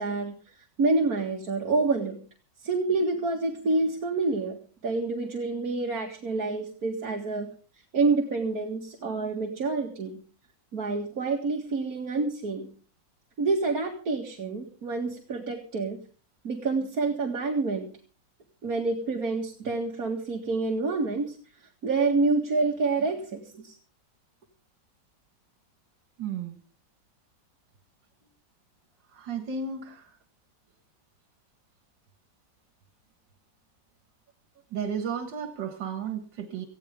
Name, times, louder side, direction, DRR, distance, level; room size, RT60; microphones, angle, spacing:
voice 1, 0.0-2.2 2.6-4.6 4.8-7.5 7.9-10.2 10.7-12.7 13.4-16.0 16.4-17.9 18.6-21.4 21.8-23.8, right 3 dB, 55° right, 1 dB, 2.4 m, -28 dB
voice 2, 26.2-26.6 29.1-30.2 34.7-36.7, right 6 dB, 80° right, 6 dB, 2.2 m, -33 dB
19.5 x 15.5 x 3.6 m, 0.39 s
omnidirectional pair, 1.9 m